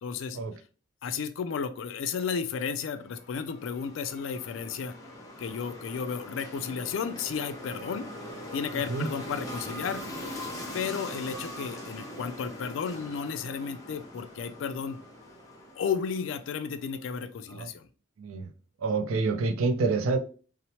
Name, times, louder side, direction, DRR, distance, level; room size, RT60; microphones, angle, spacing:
voice 1, 0.0-0.4 1.0-4.9 5.4-8.1 8.5-10.0 10.7-15.0 15.8-17.9, left 6 dB, 70° left, 0.3 m, -33 dB
sound 1, 2.6-16.9, left 1 dB, 15° left, 0.6 m, -42 dB
voice 2, 18.2-18.5 18.8-20.2, right 3 dB, 85° right, 0.4 m, -27 dB
2.8 x 2.0 x 2.8 m
head